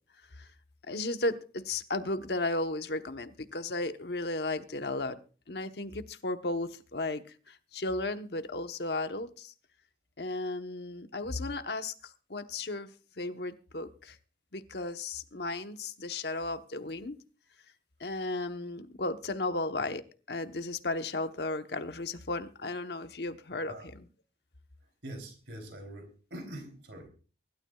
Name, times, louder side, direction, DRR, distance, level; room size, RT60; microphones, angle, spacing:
voice 1, 0.9-5.2 5.5-9.5 10.2-12.9 13.2-14.2 14.5-17.2 18.0-24.1, left 2 dB, 75° left, 8 dB, 1.1 m, -35 dB
voice 2, 25.0-27.1, right 1 dB, 90° right, 4 dB, 3.4 m, -44 dB
24.0 x 12.5 x 2.4 m, 0.37 s
head